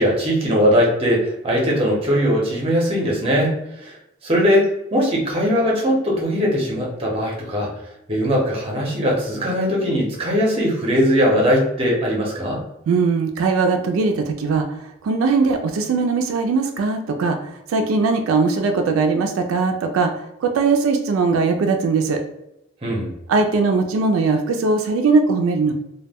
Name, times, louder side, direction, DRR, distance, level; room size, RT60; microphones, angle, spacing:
voice 1, 0.0-4.0 4.2-7.7 8.1-12.6 22.8-23.1, equal, 30° right, -2 dB, 0.6 m, -20 dB
voice 2, 12.9-22.2 23.3-25.7, right 4 dB, 85° right, 6 dB, 0.3 m, -20 dB
2.2 x 2.1 x 3.4 m, 0.87 s
head